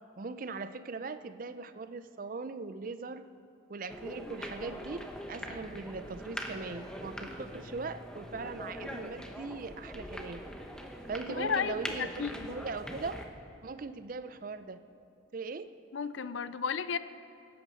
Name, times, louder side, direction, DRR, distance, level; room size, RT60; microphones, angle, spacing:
voice 1, 0.2-3.3 3.7-10.4 11.1-13.2 13.6-14.8 15.3-15.7, right 4 dB, 45° right, 12 dB, 0.5 m, -40 dB
sound 1, 3.9-13.2, equal, 5° left, 0.8 m, -42 dB
voice 2, 11.4-12.5 15.9-17.0, left 6 dB, 70° left, 14 dB, 0.5 m, -33 dB
16.0 x 8.7 x 6.3 m, 2.4 s
head